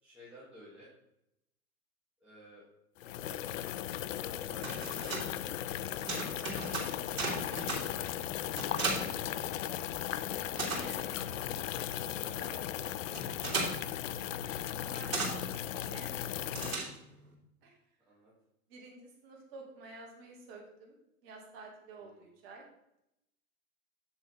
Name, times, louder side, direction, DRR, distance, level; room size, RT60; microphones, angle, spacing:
voice 1, 0.0-0.9 2.2-2.6 3.2-3.4 4.2-8.5 18.1-18.3 22.0-22.2, equal, 5° right, -11 dB, 2.7 m, -54 dB
sound 1, 3.0-16.8, left 12 dB, 60° left, 0.5 m, -37 dB
sound 2, 4.4-10.0 10.2-17.3, right 3 dB, 65° right, 3.2 m, -38 dB
sound 3, 7.2-14.8, right 2 dB, 25° right, 2.1 m, -53 dB
voice 2, 10.5-11.1 11.7-12.9 14.8-16.7 17.6-17.8 18.7-21.0 21.2-22.6, right 3 dB, 45° right, 0 dB, 2.4 m, -51 dB
8.3 x 6.7 x 3.6 m, 0.83 s
hypercardioid pair, 110°, 43 cm